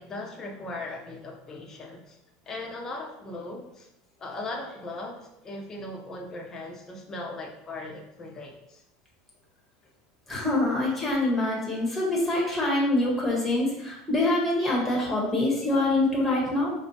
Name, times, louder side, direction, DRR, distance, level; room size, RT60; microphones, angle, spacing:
voice 1, 0.0-2.2 2.5-3.9 4.2-8.8, left 2 dB, 25° left, 0 dB, 0.6 m, -38 dB
voice 2, 10.3-16.7, left 2 dB, 5° left, -3 dB, 1.0 m, -25 dB
4.3 x 2.1 x 2.7 m, 0.83 s
supercardioid pair, 120°, 2 cm